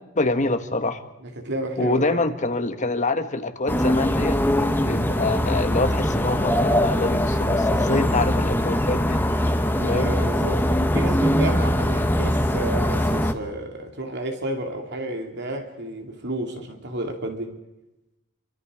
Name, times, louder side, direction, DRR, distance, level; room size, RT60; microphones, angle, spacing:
voice 1, 0.1-1.0 1.8-9.2 9.8-10.1, left 2 dB, 35° left, 7 dB, 1.6 m, -25 dB
voice 2, 1.2-2.0 9.8-17.5, right 1 dB, 55° right, 4 dB, 2.9 m, -31 dB
sound 1, 3.7-13.3, equal, 10° left, 1.2 m, -22 dB
29.0 x 24.5 x 5.0 m, 0.95 s
head